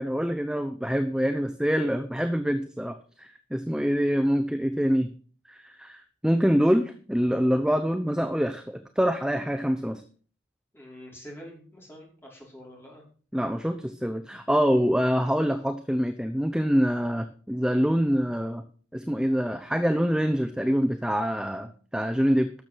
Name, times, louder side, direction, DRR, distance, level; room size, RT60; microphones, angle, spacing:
voice 1, 0.0-5.1 5.5-10.0 13.3-18.6 18.9-22.5, equal, 5° right, 8 dB, 0.7 m, -25 dB
voice 2, 10.7-13.0, equal, 10° left, -3 dB, 5.0 m, -46 dB
12.5 x 7.1 x 6.1 m, 0.42 s
head